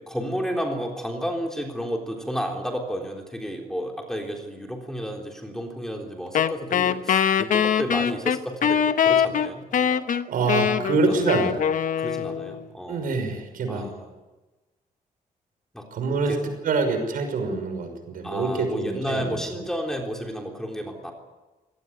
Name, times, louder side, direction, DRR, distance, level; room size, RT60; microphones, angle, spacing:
voice 1, 0.0-10.0 11.1-11.3 12.0-13.3 13.7-14.1 15.7-15.9 16.3-16.4 18.2-21.1, equal, 5° left, 2 dB, 3.6 m, -32 dB
Wind instrument woodwind instrument, 6.3-12.6, left 8 dB, 65° left, 1.1 m, -23 dB
voice 2, 10.2-11.5 12.9-13.9 15.9-16.4 16.6-19.6, right 3 dB, 70° right, 6 dB, 5.9 m, -25 dB
25.0 x 18.0 x 9.6 m, 1.2 s
cardioid pair, 145°, 15 cm